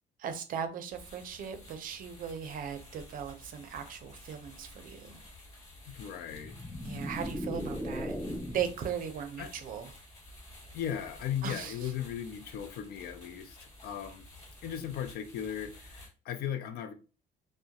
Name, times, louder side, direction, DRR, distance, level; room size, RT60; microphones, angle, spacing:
voice 1, 0.2-5.1 6.8-8.2 8.5-9.9 11.4-11.7, right 8 dB, 55° right, 0.5 m, -38 dB
sound 1, 0.9-16.1, left 1 dB, 40° left, 1.3 m, -52 dB
voice 2, 5.9-6.5 9.4-9.5 10.7-14.2 14.6-16.9, left 9 dB, 70° left, 0.4 m, -37 dB
sound 2, 6.3-8.8, equal, 5° left, 0.3 m, -37 dB
2.3 x 2.0 x 2.7 m
cardioid pair, 110°, 17 cm